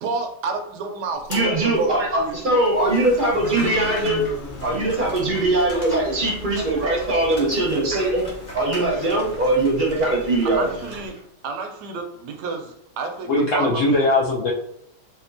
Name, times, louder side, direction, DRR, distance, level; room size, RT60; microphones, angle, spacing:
voice 1, 0.0-2.6 10.4-11.2 11.4-14.0, right 4 dB, 80° right, 5 dB, 1.1 m, -30 dB
sound 1, 1.1-11.1, left 1 dB, 55° left, 1.1 m, -38 dB
voice 2, 1.3-4.2 4.6-8.3 8.5-10.7, right 2 dB, 45° right, -2 dB, 0.7 m, -21 dB
sound 2, 2.7-11.2, equal, 30° left, 1.0 m, -42 dB
voice 3, 13.3-14.5, left 2 dB, 70° left, -2 dB, 0.7 m, -20 dB
4.2 x 2.6 x 2.5 m, 0.73 s
omnidirectional pair, 1.8 m